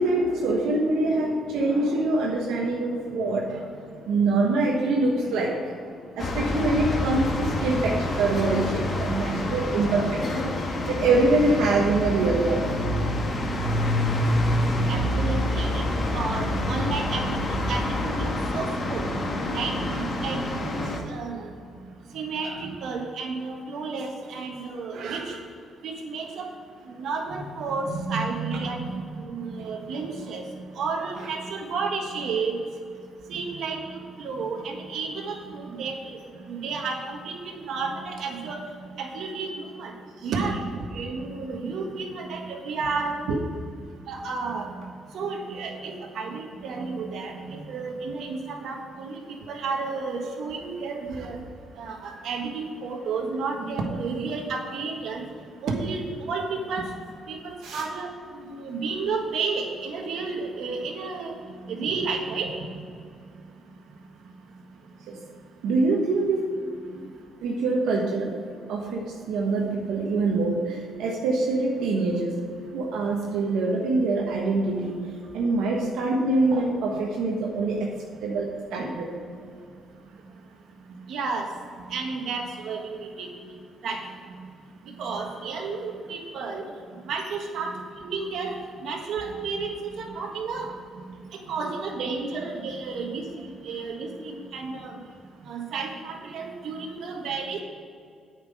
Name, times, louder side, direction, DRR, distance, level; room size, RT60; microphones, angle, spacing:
voice 1, 0.0-3.8 4.1-10.5 10.9-12.7 43.3-43.4 57.6-57.8 65.1-65.2 65.6-66.4 67.4-68.3 68.7-72.4 72.7-75.0 75.3-77.9 78.2-79.1, right 2 dB, 90° right, -2 dB, 1.2 m, -24 dB
sound 1, 6.2-21.0, left 1 dB, 40° left, 1.7 m, -27 dB
voice 2, 14.9-19.0 19.5-21.5 22.1-25.4 25.8-26.5 26.9-30.4 30.8-32.6 33.3-36.2 36.4-38.6 39.0-39.9 40.2-43.2 44.1-49.2 49.5-51.4 51.8-55.2 55.6-56.9 57.3-58.1 58.4-62.5 76.9-77.0 81.1-81.4 81.9-83.3 83.8-84.0 85.0-86.7 87.0-87.7 88.0-88.6 88.8-90.7 91.5-94.9 95.5-97.6, right 4 dB, 70° right, 2 dB, 1.6 m, -32 dB
8.7 x 6.0 x 7.9 m, 2.2 s
cardioid pair, 90°, 0 cm